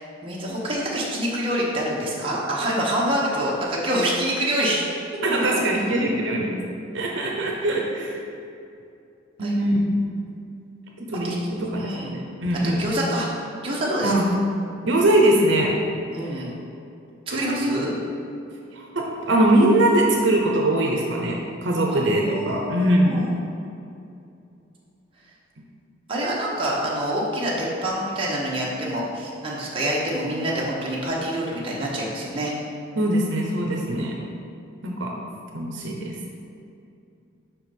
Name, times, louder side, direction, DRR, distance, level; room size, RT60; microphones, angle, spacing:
voice 1, 0.0-4.8 5.3-5.6 9.4-9.7 11.2-11.4 11.7-12.2 12.6-13.3 13.6-14.1 16.1-16.6 17.3-17.9 21.9-23.3 26.1-32.5, right 1 dB, 25° right, -5 dB, 1.1 m, -26 dB
voice 2, 5.2-6.6 6.9-8.2 9.4-10.0 11.0-12.8 14.0-14.3 14.9-15.7 16.3-16.4 17.3-18.0 18.7-23.2 33.0-34.2 34.8-35.1 35.5-36.1, right 1 dB, 70° right, -1 dB, 0.8 m, -22 dB
5.6 x 4.6 x 5.4 m, 2.6 s
head